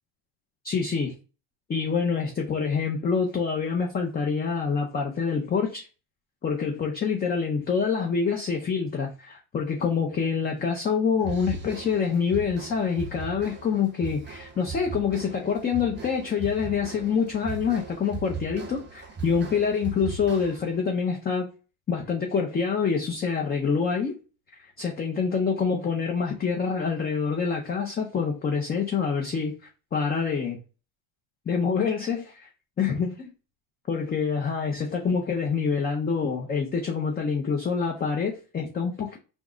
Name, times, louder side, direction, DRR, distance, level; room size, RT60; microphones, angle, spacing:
voice 1, 0.6-1.2 1.7-5.9 6.4-21.5 21.9-24.2 24.6-29.6 29.9-30.6 31.5-32.5 32.8-33.3 33.9-39.2, left 6 dB, 20° left, 0.4 m, -26 dB
sound 1, 11.2-20.8, right 4 dB, 20° right, 0.7 m, -38 dB
3.6 x 2.0 x 3.7 m
cardioid pair, 120°, 49 cm